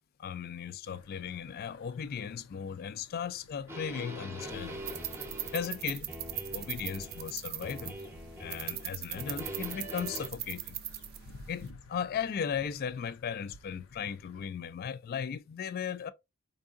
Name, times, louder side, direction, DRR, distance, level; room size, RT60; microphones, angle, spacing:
voice 1, 0.2-4.8 5.5-6.1 6.5-8.0 8.4-10.8 11.5-16.1, left 7 dB, 50° left, 0.3 m, -37 dB
sound 1, 0.8-14.5, left 3 dB, 85° left, 0.6 m, -56 dB
sound 2, 3.7-7.3 7.6-8.9 9.1-10.3, equal, 10° right, 0.7 m, -43 dB
sound 3, 4.5-11.7, right 11 dB, 50° right, 0.4 m, -41 dB
4.6 x 2.7 x 2.4 m
head